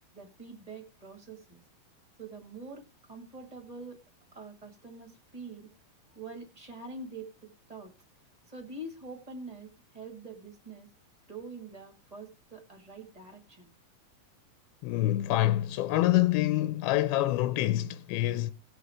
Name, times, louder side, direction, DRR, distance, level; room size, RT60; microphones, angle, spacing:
voice 1, 0.1-1.6 2.2-4.0 4.3-5.7 6.1-7.9 8.5-10.9 11.3-13.7, right 3 dB, 20° right, 1.1 m, -45 dB
voice 2, 14.8-18.5, left 15 dB, 85° left, 2.6 m, -26 dB
19.0 x 6.5 x 3.6 m
omnidirectional pair, 4.3 m